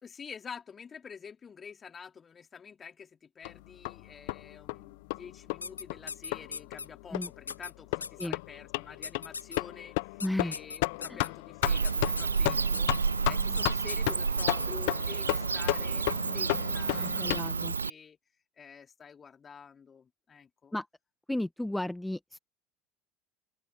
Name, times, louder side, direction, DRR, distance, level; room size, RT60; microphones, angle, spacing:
voice 1, 0.0-18.2 18.6-20.7, left 6 dB, 30° left, 3.6 m, -48 dB
sound 1, 3.5-17.4, left 26 dB, 60° left, 1.1 m, -34 dB
sound 2, 5.6-6.9 7.2-7.7 8.0-8.3 9.0-9.6 10.2-11.3 11.8-12.4 12.7-13.0 13.5-13.6 13.9-14.7, left 5 dB, 80° left, 1.4 m, -39 dB
voice 2, 10.2-10.5 11.1-11.3 17.0-17.7 20.7-20.9 21.3-22.4, left 1 dB, 5° left, 1.8 m, -34 dB
Bird / Cricket, 11.6-17.9, right 5 dB, 80° right, 0.3 m, -30 dB
open air
figure-of-eight pair, 65°, 0 cm